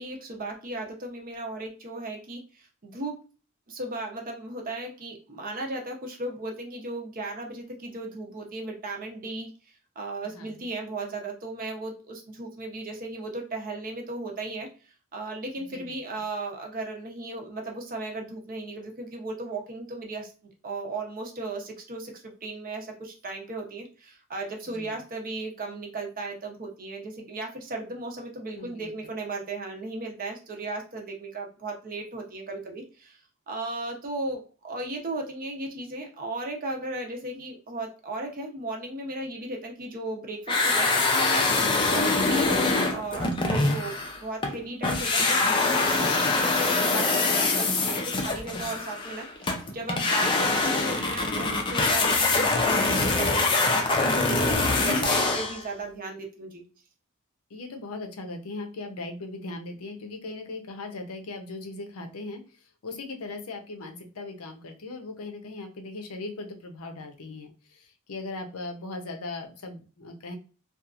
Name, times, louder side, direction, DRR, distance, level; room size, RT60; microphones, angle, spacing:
voice 1, 0.0-3.2 3.7-9.5 10.0-14.7 15.1-20.3 20.6-33.2 33.5-56.6, right 2 dB, 40° right, 2 dB, 0.7 m, -36 dB
voice 2, 28.5-28.9 57.5-62.4 62.8-70.4, left 2 dB, 75° left, 5 dB, 0.6 m, -38 dB
sound 1, 40.5-44.6 44.8-55.6, left 3 dB, 20° left, 0.4 m, -24 dB
2.8 x 2.4 x 2.3 m, 0.36 s
head